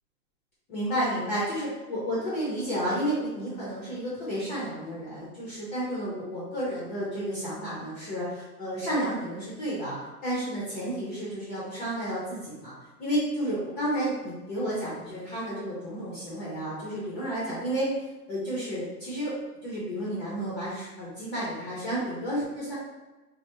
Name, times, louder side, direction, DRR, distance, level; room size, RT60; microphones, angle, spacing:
voice 1, 0.7-10.0 10.2-12.7 13.0-17.9 18.3-19.3 19.6-22.7, right 1 dB, 30° left, -7 dB, 0.6 m, -31 dB
3.2 x 2.0 x 2.9 m, 1.1 s
hypercardioid pair, 145°, 47 cm